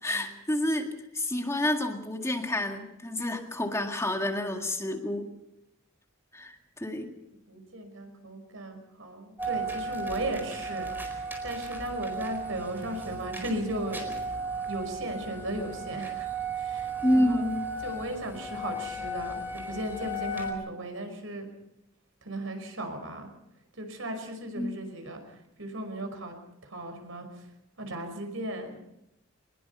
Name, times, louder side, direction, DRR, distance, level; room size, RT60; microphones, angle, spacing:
voice 1, 0.0-5.3 6.3-7.1 17.0-17.7 24.6-24.7, left 1 dB, 15° left, 3 dB, 2.0 m, -29 dB
voice 2, 7.5-14.4 14.7-16.3 16.5-17.5 17.8-21.5 22.2-23.3 23.8-26.4 26.6-27.5 27.8-28.9, right 1 dB, 75° right, 6 dB, 5.5 m, -36 dB
sound 1, 9.4-20.5, right 2 dB, 10° right, 4.5 m, -35 dB
23.0 x 21.0 x 5.6 m, 0.84 s
head